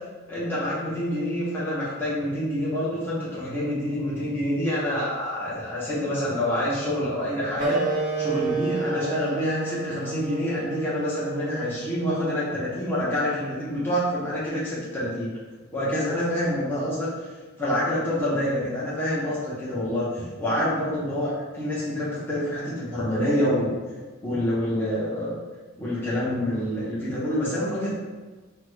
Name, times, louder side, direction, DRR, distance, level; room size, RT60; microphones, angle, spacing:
voice 1, 0.3-7.8 8.2-15.3 15.7-17.1 17.6-23.7 24.2-25.3 25.8-27.9, equal, 10° left, -9 dB, 0.6 m, -27 dB
Wind instrument woodwind instrument, 7.6-12.7, right 3 dB, 20° right, 0.8 m, -30 dB
3.2 x 2.0 x 3.0 m, 1.3 s
head